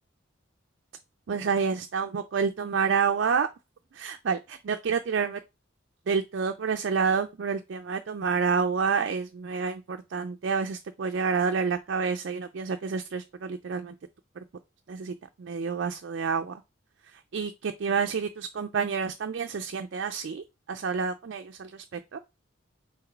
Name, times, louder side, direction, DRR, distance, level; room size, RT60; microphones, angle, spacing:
voice 1, 1.3-3.5 3.9-5.4 6.1-13.9 14.4-14.5 14.9-16.6 17.0-22.2, right 5 dB, 60° right, 0.4 m, -29 dB
3.9 x 3.0 x 4.5 m
head